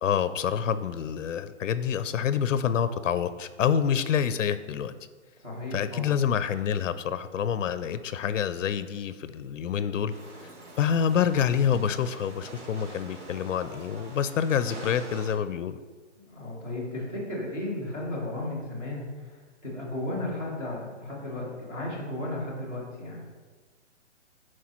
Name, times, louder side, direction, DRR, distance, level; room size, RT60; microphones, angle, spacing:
voice 1, 0.0-4.9 5.7-10.1 10.8-15.8, left 8 dB, 80° left, 13 dB, 0.5 m, -27 dB
voice 2, 5.4-6.1 16.2-23.2, left 1 dB, 10° right, -8 dB, 1.3 m, -34 dB
sound 1, 10.1-15.4, right 2 dB, 70° right, 1.9 m, -45 dB
10.0 x 4.6 x 3.0 m, 1.4 s
hypercardioid pair, 180°, 37 cm